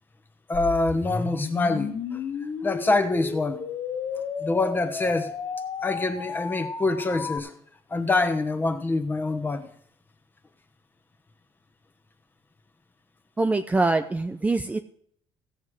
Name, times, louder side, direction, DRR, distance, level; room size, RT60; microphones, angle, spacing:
sound 1, 0.5-7.4, left 5 dB, 50° left, 1.6 m, -33 dB
voice 1, 0.5-2.2 2.6-3.6 4.4-5.3 5.8-7.5 7.9-9.7, left 3 dB, 20° left, 9 dB, 1.2 m, -25 dB
voice 2, 13.4-14.8, right 3 dB, 15° right, 7 dB, 0.5 m, -24 dB
16.0 x 7.4 x 4.8 m, 0.64 s
cardioid pair, 125°, 10 cm